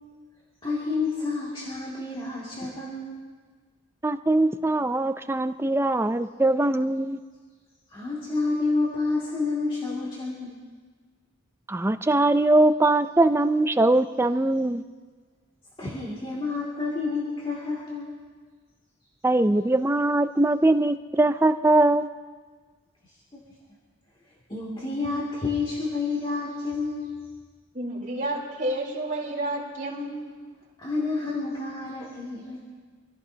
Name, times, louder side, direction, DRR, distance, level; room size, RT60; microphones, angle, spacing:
voice 1, 0.6-3.1 7.9-10.5 15.8-18.1 23.3-23.4 24.5-27.1 30.8-32.6, left 3 dB, 25° left, -7 dB, 2.4 m, -29 dB
voice 2, 4.0-7.2 11.7-14.8 19.2-22.1, right 2 dB, 10° right, 10 dB, 0.4 m, -21 dB
voice 3, 27.7-30.2, right 1 dB, 40° right, -3 dB, 3.4 m, -30 dB
26.5 x 16.5 x 2.8 m, 1.5 s
head